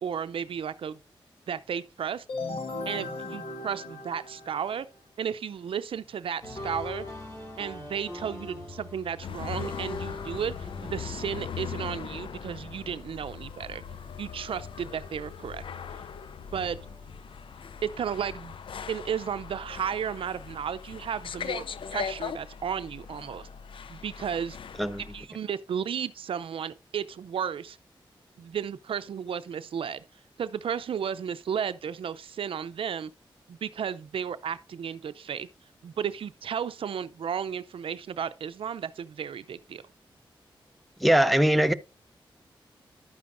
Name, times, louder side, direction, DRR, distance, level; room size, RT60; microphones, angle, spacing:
voice 1, 0.0-1.0 1.5-2.2 2.9-4.9 5.2-7.1 7.6-13.8 14.2-15.6 16.5-16.8 17.8-18.5 18.9-21.6 21.9-23.5 23.9-24.6 25.1-27.8 28.4-30.0 30.4-33.1 33.5-35.5 35.8-39.8, right 8 dB, 80° right, 0.5 m, -33 dB
sound 1, 2.3-5.0, left 3 dB, 90° left, 1.5 m, -37 dB
sound 2, 6.4-14.3 14.6-16.1 16.6-18.1, left 2 dB, 35° left, 5.0 m, -43 dB
sound 3, 9.2-25.3, left 7 dB, 75° left, 0.5 m, -40 dB
voice 2, 41.0-41.7, right 1 dB, ahead, 0.7 m, -21 dB
11.0 x 9.4 x 2.6 m
cardioid pair, 60°, 9 cm